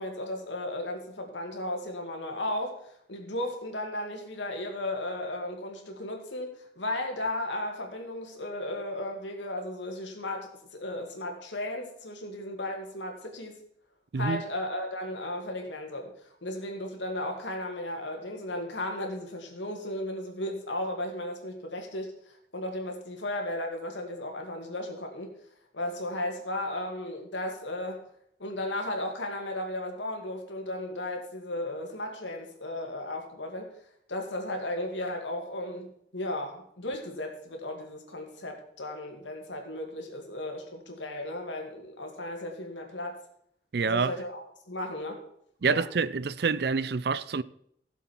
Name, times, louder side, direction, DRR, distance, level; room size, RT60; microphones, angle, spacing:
voice 1, 0.0-13.6 14.2-25.3 25.7-28.0 28.4-33.7 34.1-43.2 43.8-45.2 45.7-45.9, left 1 dB, 90° left, 2.5 m, -35 dB
voice 2, 43.7-44.2 45.6-47.4, right 5 dB, 60° right, 0.4 m, -27 dB
16.0 x 7.1 x 4.6 m
head